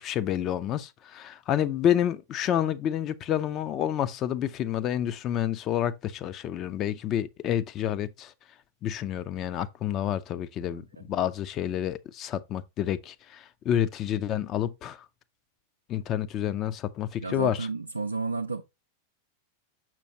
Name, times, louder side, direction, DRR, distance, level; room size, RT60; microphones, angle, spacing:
voice 1, 0.0-8.3 8.8-15.1 15.9-17.7, left 10 dB, 35° left, 0.6 m, -29 dB
voice 2, 10.7-11.0 17.2-18.6, right 4 dB, 80° right, 0.5 m, -32 dB
6.9 x 6.0 x 2.8 m
figure-of-eight pair, 90°, 0 cm